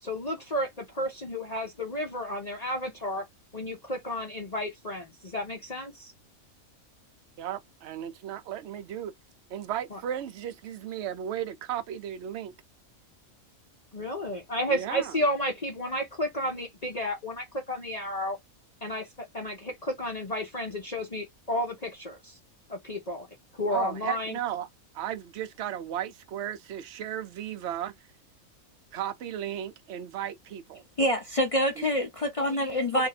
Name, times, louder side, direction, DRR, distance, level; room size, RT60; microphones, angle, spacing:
voice 1, 0.0-3.2 3.5-6.1 9.9-10.0 13.9-18.4 18.8-22.4 22.7-23.3 23.5-24.4 32.9-33.1, equal, 35° left, 0.8 m, -32 dB
voice 2, 7.4-9.1 9.5-12.5 14.7-15.2 23.7-24.7 24.9-27.9 28.9-30.8 31.8-31.9, right 10 dB, 60° right, 0.8 m, -35 dB
voice 3, 31.0-33.1, equal, 50° left, 0.4 m, -26 dB
2.8 x 2.6 x 4.0 m
omnidirectional pair, 1.5 m